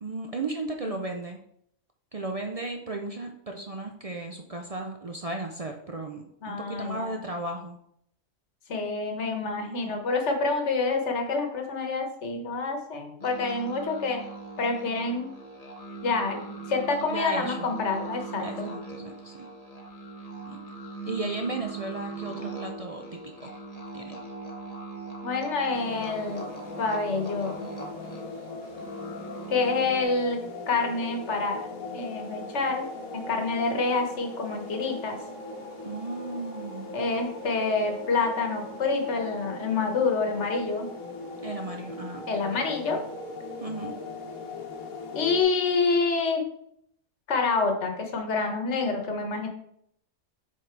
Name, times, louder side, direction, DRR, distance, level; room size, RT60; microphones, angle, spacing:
voice 1, 0.0-1.4 2.1-7.8 9.6-10.0 17.1-17.8 18.4-19.5 20.5-20.6 21.1-23.5 23.9-24.2 35.8-36.9 41.4-42.2 43.6-44.0, right 2 dB, 60° right, 3 dB, 0.3 m, -35 dB
voice 2, 6.4-7.1 8.7-14.2 14.6-15.3 16.0-16.4 16.7-18.7 25.2-26.4 26.8-27.7 29.5-30.4 30.7-31.7 31.9-32.9 33.1-35.2 36.9-40.9 42.3-43.0 45.1-46.4 47.3-49.5, left 4 dB, 55° left, 4 dB, 1.4 m, -27 dB
sound 1, 13.2-30.0, right 3 dB, 30° left, 0.9 m, -40 dB
sound 2, 25.7-45.4, left 2 dB, 75° left, 1.5 m, -39 dB
7.3 x 4.0 x 4.6 m, 0.71 s
omnidirectional pair, 1.5 m